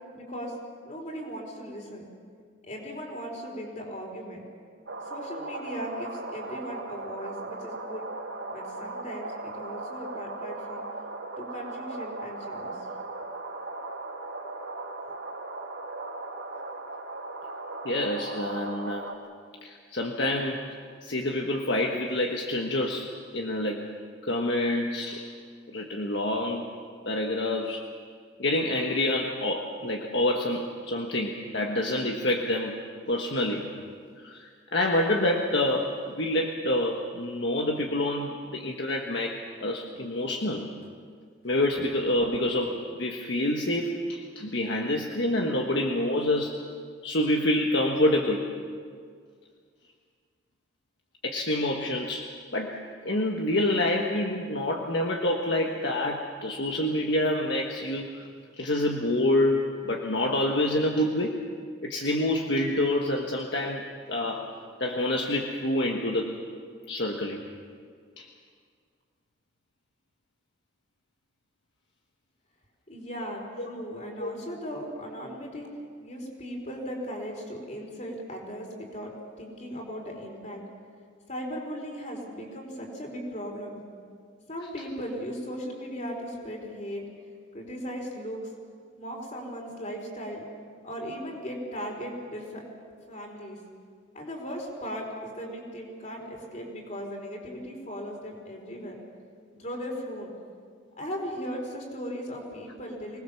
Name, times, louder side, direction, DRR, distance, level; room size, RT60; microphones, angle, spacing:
voice 1, 0.1-0.5 0.8-2.1 2.6-4.4 5.1-8.0 8.5-10.8 11.4-12.9 72.9-75.7 76.0-80.6 81.3-83.8 84.5-87.0 87.5-88.4 89.0-90.4 90.8-92.6 93.1-93.6 94.1-99.0 99.5-100.3 101.0-103.2, equal, 40° left, 1 dB, 4.5 m, -37 dB
sound 1, 4.9-19.1, right 2 dB, 70° right, 2.1 m, -38 dB
voice 2, 17.8-19.1 19.6-20.6 21.0-23.9 24.2-25.3 25.7-26.7 27.0-27.8 28.4-32.7 33.1-33.7 34.2-40.7 41.4-46.6 47.0-48.5 51.2-52.8 53.0-58.3 58.6-61.4 61.8-64.5 64.8-66.3 66.9-67.4 68.2-68.3 73.6-73.7 74.2-74.3, left 1 dB, 60° left, 1 dB, 1.4 m, -27 dB
25.0 x 19.5 x 7.1 m, 2.1 s
head